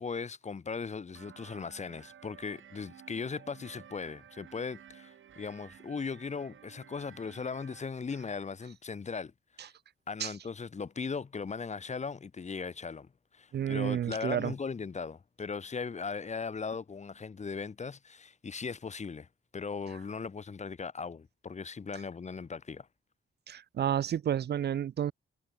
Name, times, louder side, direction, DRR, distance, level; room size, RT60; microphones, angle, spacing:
voice 1, 0.0-9.3 10.1-13.1 13.3-19.3 19.5-22.9, left 5 dB, 35° left, 1.4 m, -38 dB
sound 1, 1.1-7.8, right 9 dB, 75° right, 2.2 m, -54 dB
voice 2, 13.5-14.5 23.5-25.1, right 9 dB, 55° right, 0.5 m, -30 dB
wide cardioid pair, 135°, 20 cm